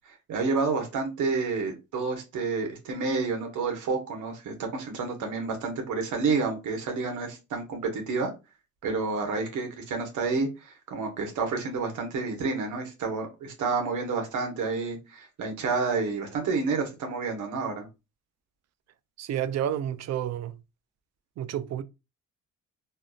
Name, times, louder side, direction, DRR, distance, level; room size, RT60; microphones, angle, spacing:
voice 1, 0.3-8.3 8.8-17.9, right 4 dB, 80° right, 1.2 m, -29 dB
voice 2, 19.2-20.5 21.4-21.8, right 10 dB, 60° right, 0.4 m, -30 dB
3.4 x 2.5 x 2.3 m
cardioid pair, 90°, 30 cm